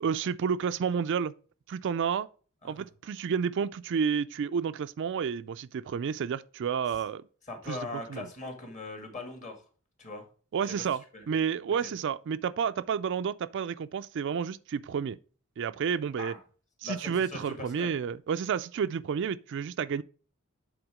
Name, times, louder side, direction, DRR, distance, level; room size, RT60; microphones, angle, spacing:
voice 1, 0.0-1.3 1.7-2.3 2.6-7.2 7.7-7.8 8.1-8.3 10.5-15.2 15.6-16.3 16.8-20.0, right 7 dB, 55° right, 0.3 m, -30 dB
voice 2, 7.5-9.6 10.0-10.3 10.6-10.8 11.1-11.3 11.8-11.9 16.2-16.4 16.8-17.9, left 2 dB, 35° left, 1.9 m, -40 dB
8.0 x 3.9 x 4.8 m
head